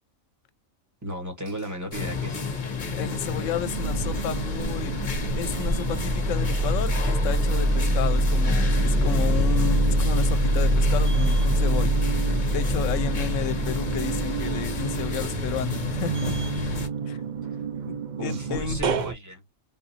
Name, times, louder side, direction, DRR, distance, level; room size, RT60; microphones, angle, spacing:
voice 1, 1.0-2.4 18.2-19.4, equal, 15° right, 1.3 m, -34 dB
sound 1, 1.9-16.9, left 4 dB, 40° left, 0.9 m, -31 dB
sound 2, 2.1-2.9 3.2-19.1, right 1 dB, 75° right, 0.4 m, -25 dB
voice 2, 2.9-5.0 5.4-11.9 12.5-16.3 17.1-17.2 17.9-18.0 18.2-18.8, left 8 dB, 75° left, 0.9 m, -32 dB
3.8 x 2.6 x 2.7 m
omnidirectional pair, 1.4 m